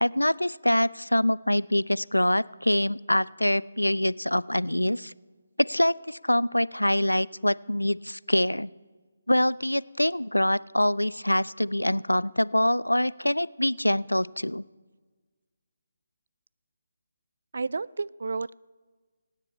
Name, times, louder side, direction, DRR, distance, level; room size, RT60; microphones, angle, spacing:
voice 1, 0.0-5.1 5.6-8.7 9.3-14.6, left 1 dB, 90° left, 21 dB, 0.3 m, -25 dB
voice 2, 17.5-18.5, right 4 dB, 60° right, 21 dB, 0.3 m, -31 dB
24.5 x 9.7 x 4.3 m, 1.4 s
figure-of-eight pair, 145°, 0 cm